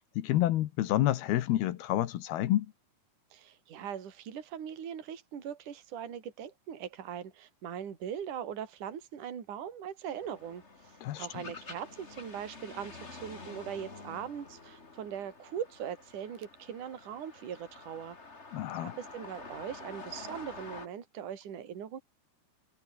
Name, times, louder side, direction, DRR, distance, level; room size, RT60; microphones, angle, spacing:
voice 1, 0.2-2.7 11.0-11.3 18.5-18.9, left 14 dB, 70° left, 2.8 m, -28 dB
voice 2, 3.3-10.6 11.2-18.2 18.8-22.0, right 9 dB, 45° right, 4.3 m, -40 dB
sound 1, 10.2-20.9, left 3 dB, 20° left, 1.8 m, -48 dB
omnidirectional pair, 5.2 m